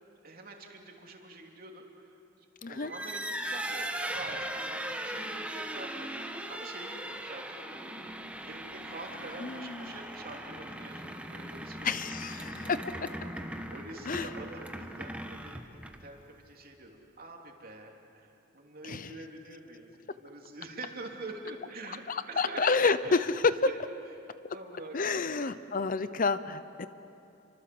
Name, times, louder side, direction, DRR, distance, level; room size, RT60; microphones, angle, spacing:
voice 1, 0.2-6.2 6.5-13.1 13.7-16.2 16.4-22.0 22.3-22.7 23.0-23.2 23.6-23.8 24.5-25.5, right 2 dB, 50° right, 1 dB, 3.1 m, -46 dB
sound 1, 2.8-16.2, right 1 dB, 5° right, 1.2 m, -39 dB
voice 2, 9.4-9.8 11.8-12.7 14.1-14.3 18.8-19.1 22.1-23.5 24.9-26.9, left 4 dB, 45° left, 13 dB, 0.7 m, -29 dB
29.5 x 24.5 x 7.9 m, 2.7 s
head